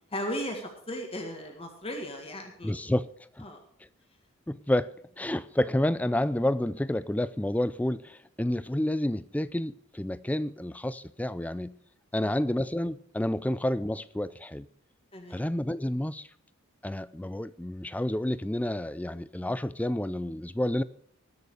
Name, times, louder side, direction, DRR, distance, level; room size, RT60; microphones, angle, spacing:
voice 1, 0.1-2.9 3.4-3.6 12.1-12.3 13.4-13.5 15.1-15.4, equal, 25° left, 3 dB, 1.9 m, -37 dB
voice 2, 2.6-3.5 4.5-11.8 12.1-14.7 15.3-16.3 16.8-20.8, left 1 dB, 5° left, 16 dB, 0.4 m, -30 dB
20.5 x 6.8 x 4.8 m, 0.65 s
head